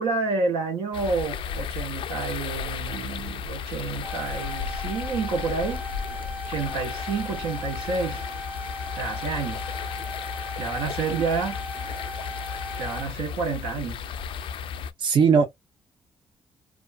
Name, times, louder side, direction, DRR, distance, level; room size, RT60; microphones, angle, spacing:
voice 1, 0.0-5.8 6.5-8.3 8.9-9.6 10.6-11.6 12.8-14.0, right 4 dB, 85° right, 1.0 m, -29 dB
sound 1, 0.9-14.9, left 7 dB, 70° left, 0.4 m, -34 dB
sound 2, 4.0-13.0, left 1 dB, 20° right, 1.0 m, -38 dB
voice 2, 15.0-15.4, right 6 dB, 60° right, 0.6 m, -19 dB
2.4 x 2.3 x 2.3 m
cardioid pair, 80°, 9 cm